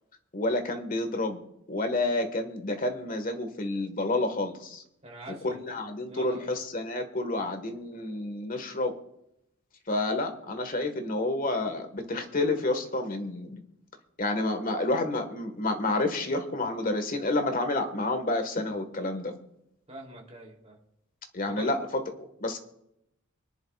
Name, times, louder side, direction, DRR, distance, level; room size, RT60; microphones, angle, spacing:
voice 1, 0.3-1.4 1.7-4.8 5.4-8.9 9.9-13.6 14.2-19.3 21.3-22.6, left 2 dB, 40° left, 7 dB, 1.5 m, -29 dB
voice 2, 5.0-5.7 6.1-6.4 19.9-20.8 21.4-21.7, right 1 dB, 30° right, -1 dB, 3.0 m, -44 dB
24.5 x 10.5 x 2.4 m, 0.79 s
head